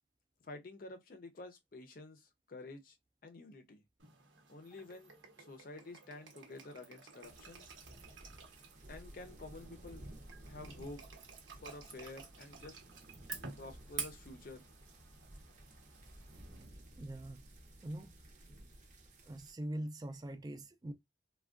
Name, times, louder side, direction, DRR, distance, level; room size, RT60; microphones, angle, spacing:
voice 1, 0.4-3.0 3.2-3.8 4.5-5.1 5.4-7.7 8.9-10.1 10.4-11.0 11.5-12.8 13.6-14.7, left 2 dB, 50° left, 0.5 m, -50 dB
sound 1, 4.0-16.6, right 5 dB, 85° right, 0.9 m, -51 dB
sound 2, 7.2-19.5, right 1 dB, 40° right, 0.7 m, -55 dB
voice 2, 17.0-17.4 17.8-18.2 19.3-20.9, right 1 dB, 20° right, 0.3 m, -43 dB
3.4 x 2.1 x 2.4 m
head